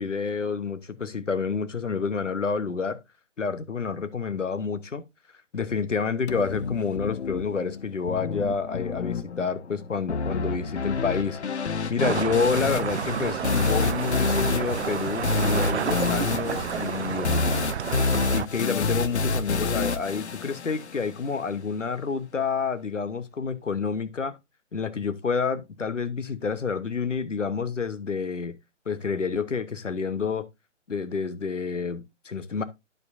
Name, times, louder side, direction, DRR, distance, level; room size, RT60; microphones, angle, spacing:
voice 1, 0.0-3.0 3.4-5.0 5.5-17.5 18.3-24.4 24.7-28.6 28.9-30.5 30.9-32.6, left 5 dB, 80° left, 1.1 m, -29 dB
sound 1, 6.3-21.3, left 4 dB, 60° left, 0.9 m, -28 dB
sound 2, 12.0-18.5, right 8 dB, 65° right, 0.5 m, -30 dB
9.4 x 7.4 x 2.6 m
figure-of-eight pair, 145°, 37 cm